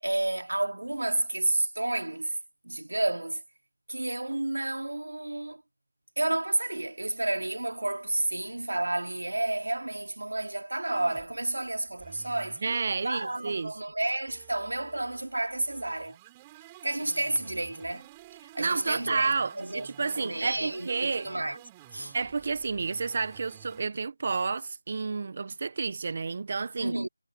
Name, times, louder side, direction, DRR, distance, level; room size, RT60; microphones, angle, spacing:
voice 1, 0.0-2.4 2.6-3.4 3.9-5.6 6.2-12.6 13.0-16.2 16.8-18.1 18.5-21.6 21.9-22.2 26.8-27.1, right 2 dB, 75° right, 3.7 m, -31 dB
sound 1, 10.9-23.8, right 18 dB, 15° right, 4.9 m, -53 dB
voice 2, 12.6-13.7 18.6-21.3 22.1-26.9, right 4 dB, 40° right, 1.2 m, -30 dB
figure-of-eight pair, 165°, 0 cm